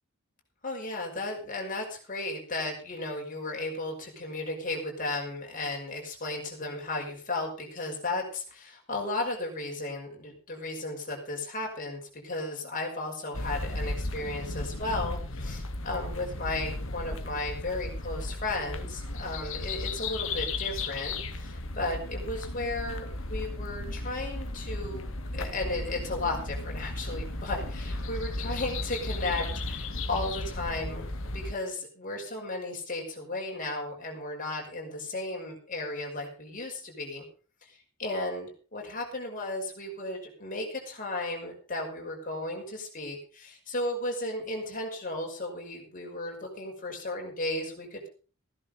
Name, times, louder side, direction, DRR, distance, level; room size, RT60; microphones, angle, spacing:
voice 1, 0.6-25.1 25.3-37.3 37.6-48.1, left 2 dB, 40° left, 0 dB, 5.8 m, -35 dB
sound 1, 13.3-31.5, left 2 dB, 70° left, 1.8 m, -35 dB
16.0 x 11.0 x 5.3 m, 0.38 s
head